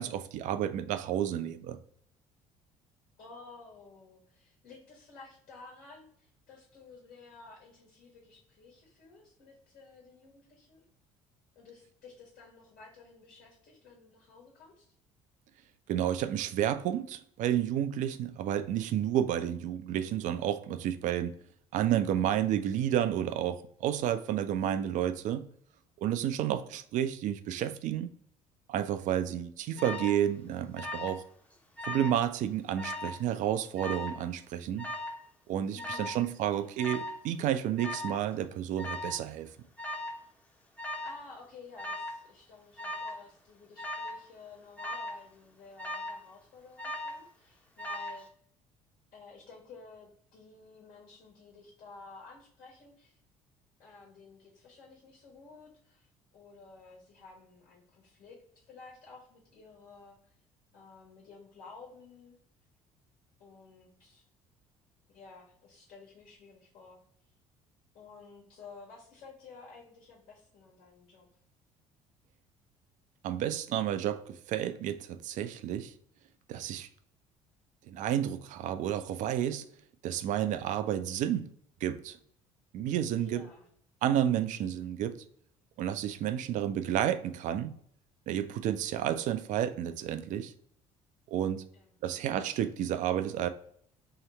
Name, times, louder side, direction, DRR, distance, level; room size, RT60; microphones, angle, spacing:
voice 1, 0.0-1.8 15.9-21.3 21.7-25.5 26.0-28.1 28.7-31.2 31.8-34.9 35.5-39.5 73.2-75.9 76.5-76.9 77.9-79.6 80.0-81.5 81.8-82.2 82.7-83.4 84.0-85.2 85.8-87.7 88.3-90.5 91.3-91.6 92.0-93.5, right 10 dB, 45° right, 0.4 m, -31 dB
voice 2, 3.2-10.8 11.5-14.9 26.4-26.8 35.7-36.8 41.0-48.3 49.1-53.2 53.8-56.1 56.3-60.3 60.7-62.4 63.4-64.2 65.1-67.0 67.9-71.3 83.2-83.7 91.7-92.1, left 4 dB, 55° left, 1.4 m, -53 dB
Alarm, 29.8-30.2 30.8-31.2 31.5-32.2 32.8-33.2 33.8-34.2 34.8-35.2 35.8-36.2 36.8-37.2 37.8-38.2 38.8-39.2 39.8-40.2 40.8-41.2 41.8-42.2 42.8-43.2 43.8-44.2 44.8-45.2 45.8-46.2 46.8-47.3 47.8-48.3, left 1 dB, 10° left, 0.8 m, -38 dB
3.1 x 2.9 x 3.9 m
figure-of-eight pair, 55°, 17 cm